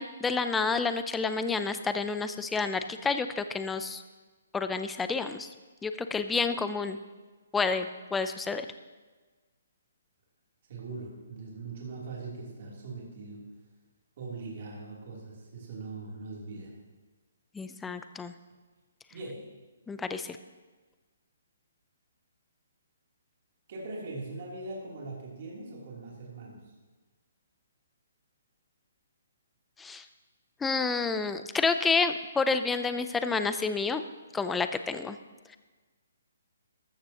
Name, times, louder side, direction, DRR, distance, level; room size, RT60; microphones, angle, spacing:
voice 1, 0.0-4.0 4.5-5.5 5.8-7.0 7.5-8.6 17.5-18.3 19.9-20.4 29.8-30.0 30.6-34.0 34.3-35.2, left 4 dB, 5° left, 9 dB, 0.4 m, -29 dB
voice 2, 10.7-13.5 14.2-16.7 19.1-19.5 23.7-26.7, right 3 dB, 40° right, -4 dB, 3.1 m, -41 dB
14.0 x 13.0 x 2.9 m, 1.3 s
hypercardioid pair, 170°, 0 cm